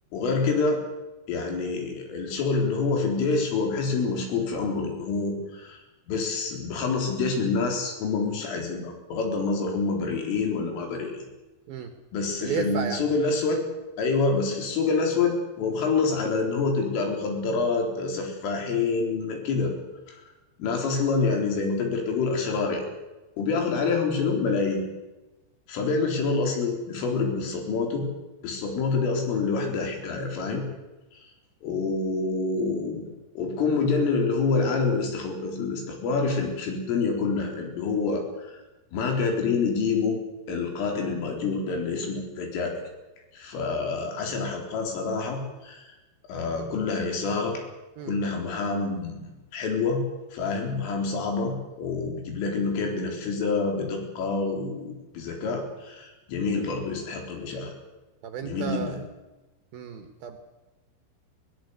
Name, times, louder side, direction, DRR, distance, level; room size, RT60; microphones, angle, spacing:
voice 1, 0.1-0.8 1.3-5.8 6.1-11.3 12.1-13.6 14.0-19.7 20.1-20.2 20.6-22.8 23.4-24.8 25.7-28.1 28.4-30.6 31.1-31.3 31.6-33.1 33.4-38.6 38.9-40.2 40.5-42.7 43.3-45.9 46.3-47.6 48.1-49.2 49.5-50.0 50.3-57.7 58.4-59.0, left 4 dB, 85° left, 2 dB, 6.5 m, -27 dB
voice 2, 12.4-13.1 48.0-48.2 58.2-59.0 59.7-60.4, right 7 dB, 65° right, 8 dB, 2.6 m, -33 dB
22.0 x 18.0 x 8.1 m, 1.1 s
omnidirectional pair, 5.6 m